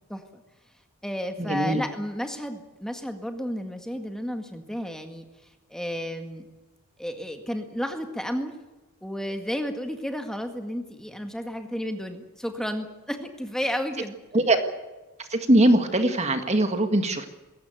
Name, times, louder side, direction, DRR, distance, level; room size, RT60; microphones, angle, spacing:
voice 1, 0.1-0.4 1.0-5.3 5.7-6.5 7.0-8.5 9.0-14.2, equal, 5° left, 5 dB, 1.8 m, -32 dB
voice 2, 1.4-1.8 14.3-14.6 15.2-17.3, right 1 dB, 30° right, 7 dB, 1.8 m, -21 dB
21.5 x 17.0 x 9.2 m, 1.1 s
head